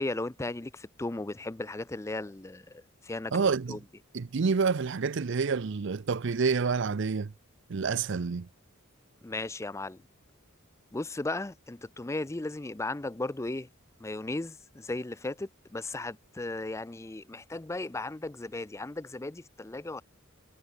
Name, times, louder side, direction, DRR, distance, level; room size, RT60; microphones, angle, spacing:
voice 1, 0.0-3.8 9.2-10.0 10.9-13.7 14.0-20.0, left 2 dB, 15° left, 0.4 m, -36 dB
voice 2, 3.3-3.8 4.1-7.3 7.7-8.5, right 5 dB, 60° right, 0.5 m, -28 dB
head